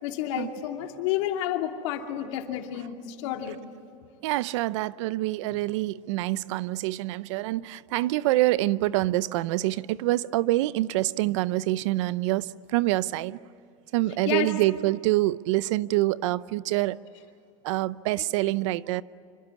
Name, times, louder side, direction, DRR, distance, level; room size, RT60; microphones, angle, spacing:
voice 1, 0.0-3.6 5.5-5.6 14.2-14.5 18.1-18.2, left 11 dB, 65° left, 2.8 m, -30 dB
voice 2, 4.2-13.4 13.9-17.0 17.6-19.0, right 17 dB, 65° right, 0.7 m, -26 dB
26.5 x 25.5 x 8.5 m
supercardioid pair, 145°, 17 cm